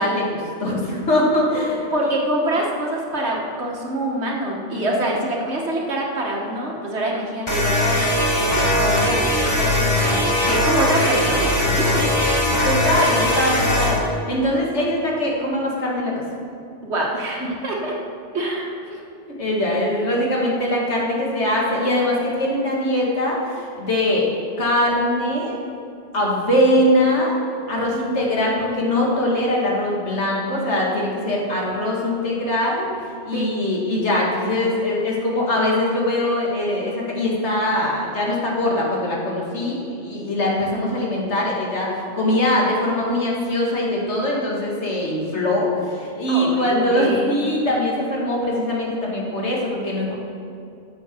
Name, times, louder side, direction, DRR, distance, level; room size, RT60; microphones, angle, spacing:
voice 1, 0.0-1.9 4.8-4.9 12.6-16.1 17.4-17.5 18.8-19.0 19.3-24.3 24.6-25.6 26.1-27.4 27.7-32.9 33.2-50.1, left 1 dB, 85° left, -3 dB, 2.3 m, -22 dB
voice 2, 1.9-12.1 16.8-17.9 18.3-18.8 33.3-33.5 46.3-47.3, right 1 dB, 75° right, -2 dB, 1.9 m, -25 dB
sound 1, 7.5-14.0, left 1 dB, 25° left, 2.0 m, -20 dB
9.8 x 6.9 x 6.9 m, 2.6 s
omnidirectional pair, 1.1 m